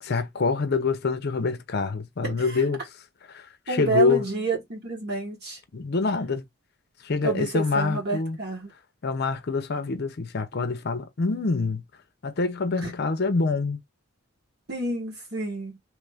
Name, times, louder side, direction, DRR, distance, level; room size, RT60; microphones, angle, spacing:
voice 1, 0.0-2.8 3.3-4.3 5.7-6.4 7.0-8.4 9.0-11.8 12.2-13.8, left 4 dB, 50° left, 0.6 m, -26 dB
voice 2, 2.2-2.6 3.7-5.6 7.2-8.7 12.8-12.9 14.7-15.7, right 3 dB, 50° right, 1.4 m, -29 dB
3.1 x 2.5 x 3.3 m
head